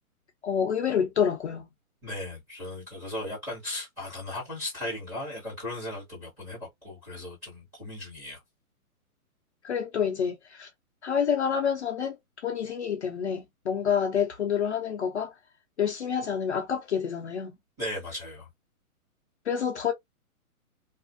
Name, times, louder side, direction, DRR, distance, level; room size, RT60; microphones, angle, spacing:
voice 1, 0.4-1.7 9.6-10.7 11.0-12.2 12.4-15.3 15.8-17.6 19.5-19.9, left 7 dB, 50° left, 0.5 m, -28 dB
voice 2, 2.0-8.4 17.8-18.5, left 1 dB, 5° right, 1.1 m, -37 dB
2.5 x 2.5 x 2.5 m
hypercardioid pair, 175°, 44 cm